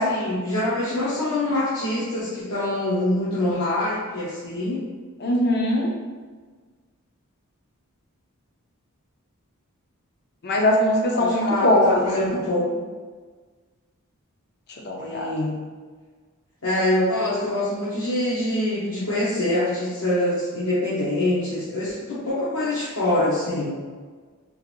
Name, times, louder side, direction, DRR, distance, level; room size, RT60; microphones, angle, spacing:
voice 1, 0.0-4.8 11.1-12.6 15.0-15.5 16.6-23.7, left 1 dB, 70° left, -10 dB, 1.0 m, -25 dB
voice 2, 5.2-5.9 10.4-12.3 14.8-15.3, left 1 dB, 50° left, 0 dB, 0.6 m, -21 dB
3.8 x 2.5 x 3.0 m, 1.5 s
head